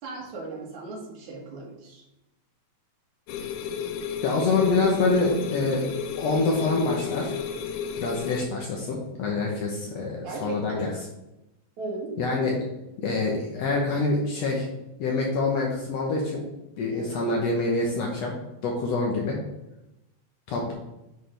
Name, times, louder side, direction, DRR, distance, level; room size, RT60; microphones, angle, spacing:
voice 1, 0.0-2.0 10.2-10.9 11.8-12.2, right 3 dB, 75° right, -2 dB, 3.2 m, -36 dB
sound 1, 3.3-8.4, left 7 dB, 90° left, 2.1 m, -33 dB
voice 2, 4.2-5.9 6.2-7.4 8.0-10.9 12.2-12.6 13.0-14.7 15.0-16.4 16.8-18.3 18.6-19.4 20.5-20.7, left 3 dB, 70° left, -2 dB, 2.1 m, -26 dB
10.0 x 5.1 x 3.3 m, 0.93 s
omnidirectional pair, 3.3 m